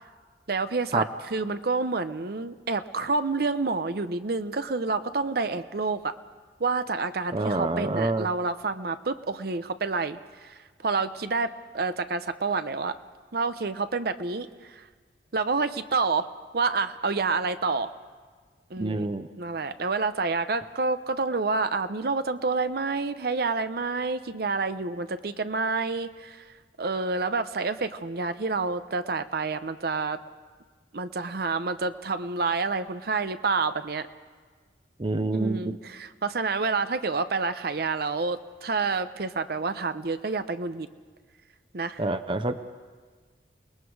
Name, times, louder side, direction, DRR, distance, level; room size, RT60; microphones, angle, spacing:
voice 1, 0.5-1.0 1.3-6.1 6.6-12.9 13.3-14.9 15.3-16.3 16.5-17.9 18.7-26.5 26.8-30.2 30.9-34.1 35.3-40.9 41.7-42.0, right 4 dB, 60° right, 11 dB, 0.7 m, -28 dB
voice 2, 7.3-8.3 18.8-19.3 35.0-35.6 42.0-42.6, right 2 dB, 30° right, 10 dB, 0.6 m, -27 dB
28.5 x 20.0 x 4.7 m, 1.5 s
head